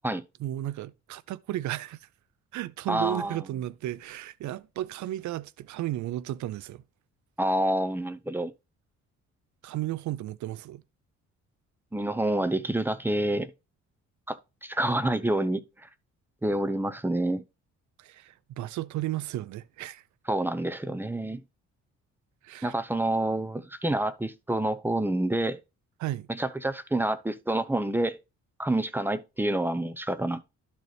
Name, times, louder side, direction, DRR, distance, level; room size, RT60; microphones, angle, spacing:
voice 1, 0.4-2.1 2.5-6.8 9.6-10.8 18.0-20.0 22.4-22.7 26.0-26.3, right 14 dB, 70° right, 0.5 m, -34 dB
voice 2, 2.9-3.4 7.4-8.5 11.9-13.5 14.3-15.9 16.4-17.4 20.3-21.4 22.6-25.6 26.3-28.2 28.6-30.4, right 1 dB, 5° right, 0.7 m, -28 dB
12.0 x 4.2 x 3.2 m
cardioid pair, 90°, 30 cm